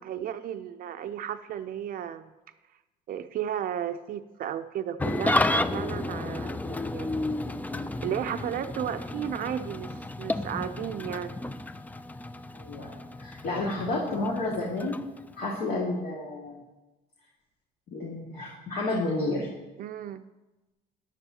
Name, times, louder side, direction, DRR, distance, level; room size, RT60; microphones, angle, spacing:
voice 1, 0.0-2.3 3.1-7.3 8.0-11.4 19.8-20.2, right 10 dB, 55° right, 9 dB, 0.5 m, -34 dB
Engine starting / Idling, 5.0-15.6, left 2 dB, 10° left, 0.4 m, -32 dB
voice 2, 12.5-15.0 15.4-16.6 17.9-19.5, left 2 dB, 65° left, -4 dB, 2.0 m, -31 dB
14.5 x 10.5 x 2.9 m, 1.1 s
cardioid pair, 110°, 17 cm